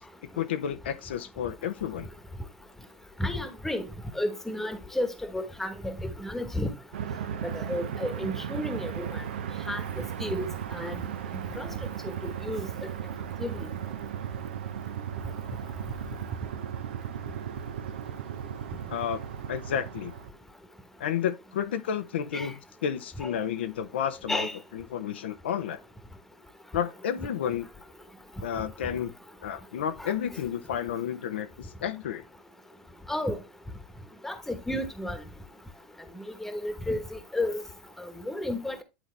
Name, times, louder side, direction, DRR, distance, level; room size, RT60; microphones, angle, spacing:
voice 1, 0.3-2.1 18.9-19.2 19.5-20.1 21.0-24.5 24.7-25.8 26.7-27.7 28.4-29.1 29.4-32.3, left 9 dB, 85° left, 0.8 m, -31 dB
voice 2, 3.2-3.9 4.1-6.7 7.4-9.2 9.7-10.4 10.7-11.0 11.6-11.7 12.2-12.7 13.4-13.5 22.3-22.5 23.2-23.3 24.3-24.5 30.0-30.1 33.1-33.3 34.2-35.2 36.4-37.6 38.3-38.8, left 1 dB, 5° left, 1.2 m, -32 dB
sound 1, 6.9-20.3, right 8 dB, 80° right, 0.7 m, -36 dB
10.0 x 4.0 x 3.3 m
hypercardioid pair, 105°, 6 cm